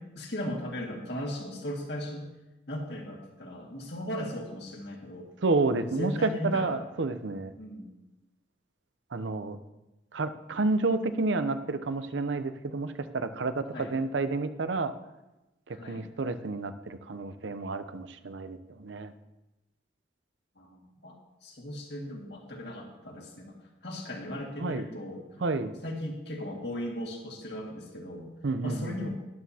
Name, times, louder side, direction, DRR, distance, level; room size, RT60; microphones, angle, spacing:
voice 1, 0.0-2.2 2.7-5.3 5.8-6.9 7.6-8.0 13.7-13.9 15.7-16.0 20.6-21.2 21.4-23.6 23.8-28.3 28.6-29.1, left 1 dB, 60° left, 0 dB, 2.0 m, -37 dB
voice 2, 5.4-7.5 9.1-9.6 10.1-14.9 15.9-19.1 24.6-24.8 25.4-25.8 28.4-29.1, right 3 dB, 80° right, 11 dB, 0.7 m, -30 dB
12.0 x 11.0 x 2.8 m, 1.0 s
head